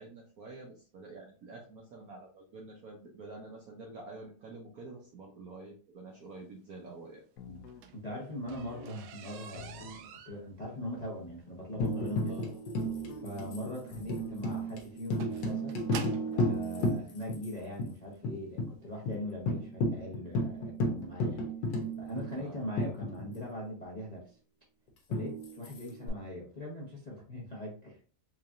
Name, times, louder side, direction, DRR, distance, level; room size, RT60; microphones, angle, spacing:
voice 1, 0.0-7.2 12.2-12.6 22.3-22.6, right 3 dB, 65° right, 0 dB, 0.9 m, -48 dB
sound 1, 7.4-7.9 8.4-8.9 9.5-10.1 11.7-12.3 12.8-13.3 13.9-14.4, left 4 dB, 85° left, 0.7 m, -48 dB
sound 2, 7.5-16.4 17.3-17.4 18.0-18.2 18.5-18.6 18.9-19.0, right 7 dB, 80° right, 1.4 m, -48 dB
voice 2, 7.9-12.4 13.2-15.7 16.3-21.5 22.0-24.4 25.1-28.0, left 1 dB, 35° left, -4 dB, 0.6 m, -41 dB
Tambourine, 11.8-17.5 17.8-17.9 18.2-18.7 19.1-19.2 19.5-23.6 25.1-26.1, equal, 65° left, 1.5 m, -33 dB
4.6 x 2.9 x 2.5 m, 0.39 s
omnidirectional pair, 2.2 m